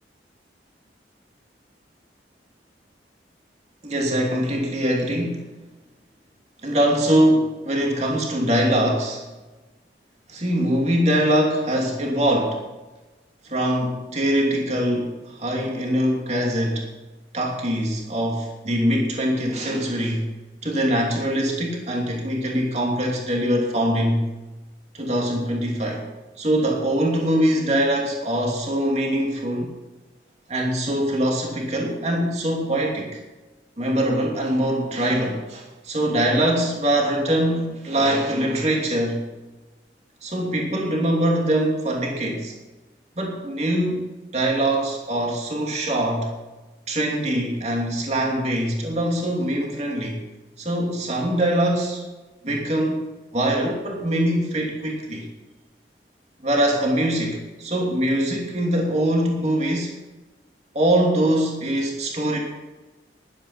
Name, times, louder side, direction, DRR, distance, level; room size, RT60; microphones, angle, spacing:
voice 1, 3.8-5.5 6.6-9.2 10.3-12.6 13.4-16.9 17.3-20.3 20.6-24.2 24.9-26.1 26.4-29.7 30.5-33.2 33.8-39.2 40.2-42.5 43.2-46.3 46.9-50.2 50.6-52.0 52.4-53.0 53.3-55.3 56.4-59.9 60.7-62.4, right 1 dB, 40° right, -1 dB, 2.8 m, -23 dB
14.5 x 11.5 x 5.8 m, 1.1 s
head